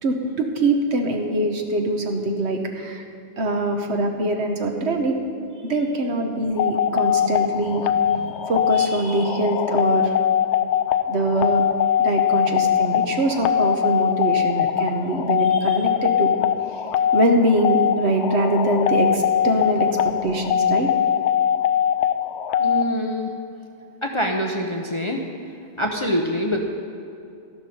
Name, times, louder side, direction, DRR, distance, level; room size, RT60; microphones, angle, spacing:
voice 1, 0.0-3.0 3.4-5.1 5.6-10.1 11.1-11.7 12.0-16.3 16.7-16.8 17.1-20.9, right 1 dB, 60° right, 3 dB, 1.4 m, -23 dB
sound 1, 6.6-22.8, left 9 dB, 70° left, 0.9 m, -21 dB
voice 2, 22.6-23.3 24.0-25.2 25.8-26.6, equal, 30° left, 1 dB, 0.7 m, -25 dB
13.5 x 12.0 x 4.3 m, 2.6 s
omnidirectional pair, 1.3 m